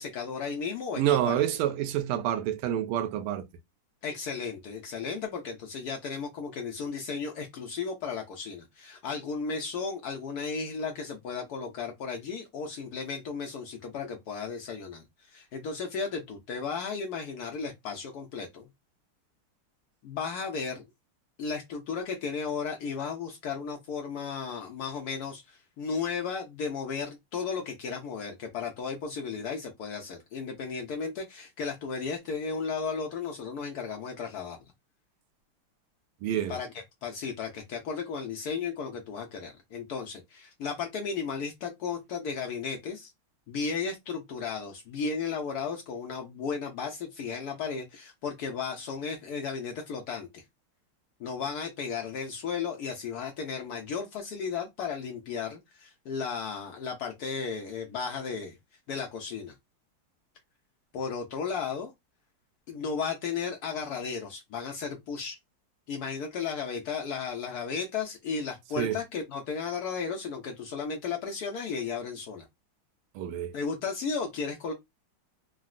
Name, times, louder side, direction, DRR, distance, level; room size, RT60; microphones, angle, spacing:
voice 1, 0.0-1.4 4.0-18.7 20.0-20.8 21.4-34.6 36.5-43.1 43.5-50.3 51.2-58.6 58.9-59.5 60.9-61.9 62.7-65.4 65.9-72.4 73.5-74.7, left 5 dB, 90° left, 0.8 m, -34 dB
voice 2, 1.0-3.5 36.2-36.6 68.8-69.0 73.1-73.5, right 11 dB, 85° right, 1.5 m, -28 dB
3.8 x 2.0 x 2.4 m
omnidirectional pair, 2.4 m